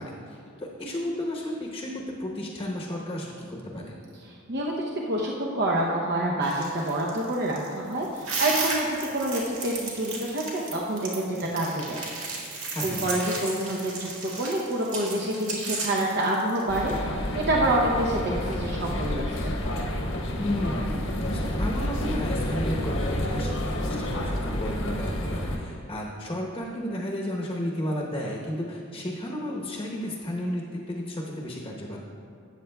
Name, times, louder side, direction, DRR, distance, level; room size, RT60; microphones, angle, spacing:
voice 1, 0.0-1.9 2.2-3.9 12.7-13.1 20.4-32.0, left 1 dB, 20° left, -2 dB, 0.9 m, -33 dB
voice 2, 5.1-12.0 12.8-16.9 17.3-19.6, right 1 dB, 55° right, -3 dB, 0.7 m, -27 dB
sound 1, 6.4-17.0, right 3 dB, 75° right, 1.9 m, -34 dB
sound 2, 16.7-25.6, left 1 dB, 75° left, 1.2 m, -29 dB
13.5 x 8.6 x 2.3 m, 2.4 s
head